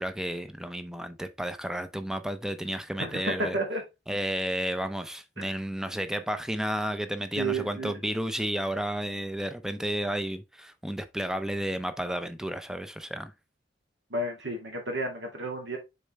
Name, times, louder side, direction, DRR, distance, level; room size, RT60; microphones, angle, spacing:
voice 1, 0.0-3.6 4.1-13.3, right 1 dB, 5° right, 0.6 m, -32 dB
voice 2, 3.0-3.8 5.4-5.5 7.3-8.0 14.1-15.8, right 2 dB, 75° right, 2.4 m, -32 dB
6.9 x 4.2 x 3.2 m
head